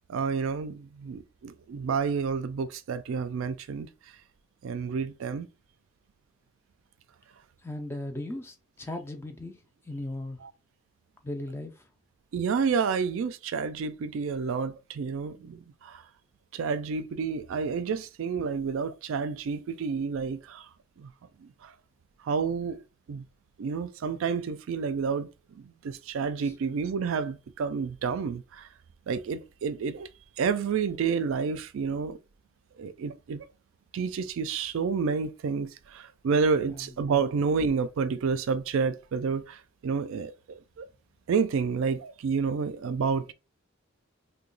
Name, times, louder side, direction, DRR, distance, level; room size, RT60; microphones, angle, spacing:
voice 1, 0.1-3.9 4.6-5.5 12.3-16.0 16.5-20.7 21.0-21.1 21.4-21.7 22.2-22.8 23.1-23.3 23.6-28.7 29.1-30.1 30.4-32.2 32.8-33.4 33.9-40.9 41.3-43.3, right 5 dB, 65° right, 0.3 m, -29 dB
voice 2, 7.6-9.6 9.8-10.4 11.2-11.9 26.4-26.5 36.6-36.9, left 1 dB, 10° left, 0.3 m, -37 dB
2.9 x 2.2 x 3.8 m
head